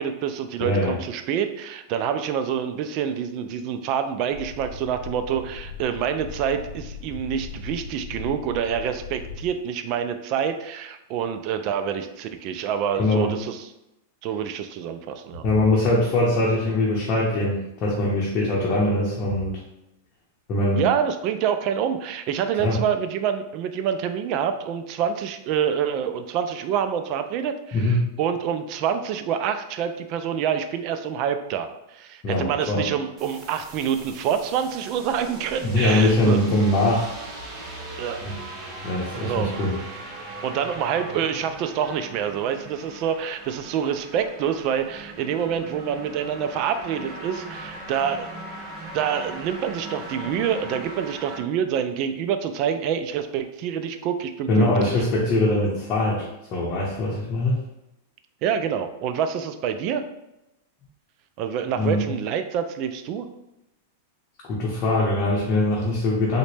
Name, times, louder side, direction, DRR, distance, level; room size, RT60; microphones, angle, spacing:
voice 1, 0.0-13.7 14.2-15.5 20.8-36.4 38.0-38.2 39.1-39.6 40.4-48.3 48.9-54.9 58.4-60.0 61.4-63.3, right 8 dB, 45° right, 8 dB, 0.3 m, -27 dB
voice 2, 0.6-1.0 13.0-13.3 15.4-19.6 20.5-20.8 22.6-22.8 27.7-28.1 32.2-32.8 35.6-37.1 38.2-38.3 38.8-39.7 54.5-57.6 61.8-62.0 64.5-66.4, left 1 dB, 35° left, -5 dB, 0.8 m, -22 dB
sound 1, 4.3-9.5, left 5 dB, 65° left, 0.5 m, -38 dB
sound 2, 33.2-51.4, right 2 dB, 30° right, 0.7 m, -39 dB
3.8 x 2.1 x 3.2 m, 0.90 s
supercardioid pair, 135°, 0 cm